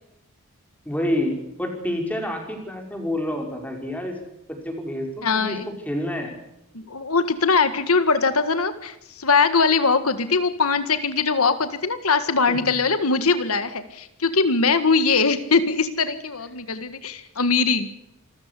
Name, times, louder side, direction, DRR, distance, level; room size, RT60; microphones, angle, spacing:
voice 1, 0.9-4.2 4.5-5.6 5.9-6.3 12.5-12.7, left 1 dB, 5° left, 2 dB, 5.2 m, -28 dB
voice 2, 5.2-5.7 6.7-17.9, left 4 dB, 90° left, 11 dB, 1.8 m, -21 dB
27.5 x 14.5 x 8.4 m, 0.83 s
head